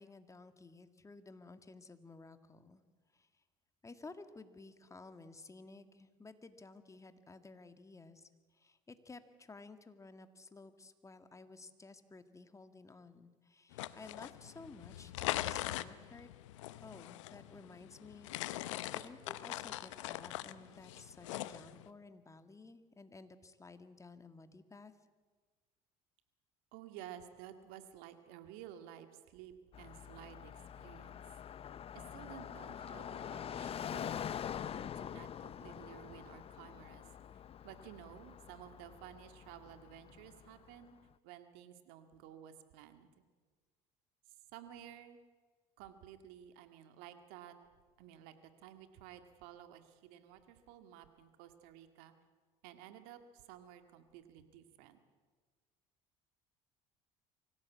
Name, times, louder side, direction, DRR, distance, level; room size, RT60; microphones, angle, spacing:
voice 1, 0.0-2.8 3.1-3.3 3.8-8.3 8.6-16.3 16.8-24.9, left 3 dB, 20° left, 9 dB, 1.9 m, -54 dB
sound 1, 13.7-21.9, left 15 dB, 90° left, 0.8 m, -42 dB
voice 2, 26.7-31.2 31.9-34.2 34.5-41.0 41.2-43.1 44.5-45.2 45.8-47.5 48.0-52.1 52.6-55.0, right 11 dB, 75° right, 9 dB, 2.0 m, -54 dB
Car passing by, 29.7-40.8, left 9 dB, 40° left, 0.6 m, -45 dB
24.5 x 16.5 x 8.4 m, 1.4 s
supercardioid pair, 80°, 15 cm